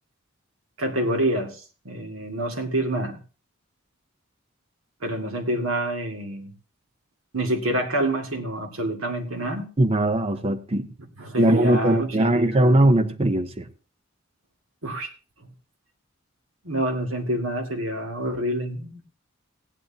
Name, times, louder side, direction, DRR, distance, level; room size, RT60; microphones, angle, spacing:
voice 1, 0.8-3.2 5.0-6.5 7.3-9.7 11.2-12.8 14.8-15.1 15.4-15.5 16.6-19.0, right 1 dB, 85° right, 2.2 m, -27 dB
voice 2, 9.8-10.9 11.4-13.7, right 1 dB, 30° right, 0.6 m, -20 dB
16.5 x 11.0 x 2.8 m
head